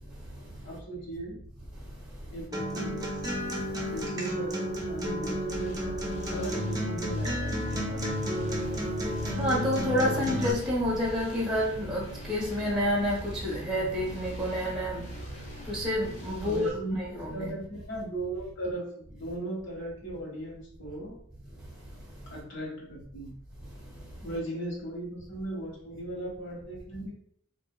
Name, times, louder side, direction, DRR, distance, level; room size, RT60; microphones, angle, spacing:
voice 1, 0.6-1.4 2.3-3.1 3.9-8.2 9.3-10.7 16.4-21.2 22.3-23.3 24.2-27.1, right 1 dB, 65° left, -4 dB, 1.4 m, -38 dB
Acoustic guitar, 2.5-10.5, equal, 20° right, 0.5 m, -32 dB
sound 1, 5.5-16.7, right 1 dB, 40° left, 0.9 m, -42 dB
voice 2, 9.3-15.1 15.6-16.7 17.2-17.5, left 1 dB, 5° right, -4 dB, 1.1 m, -28 dB
4.2 x 2.6 x 2.2 m, 0.66 s
head